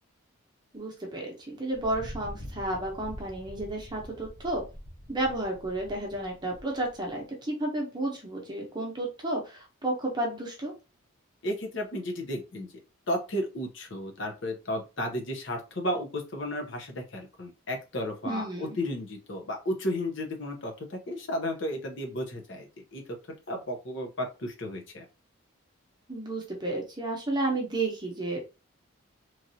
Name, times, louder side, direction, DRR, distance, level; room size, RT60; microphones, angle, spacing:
voice 1, 0.7-4.6 5.1-10.7 18.2-18.8 26.1-28.4, right 2 dB, 20° right, -1 dB, 0.8 m, -32 dB
Thunder, 1.7-7.2, equal, 25° left, 0.7 m, -45 dB
voice 2, 11.4-12.7 13.1-23.0 23.5-25.0, left 1 dB, 60° left, 2 dB, 0.8 m, -33 dB
3.1 x 2.5 x 2.7 m, 0.30 s
head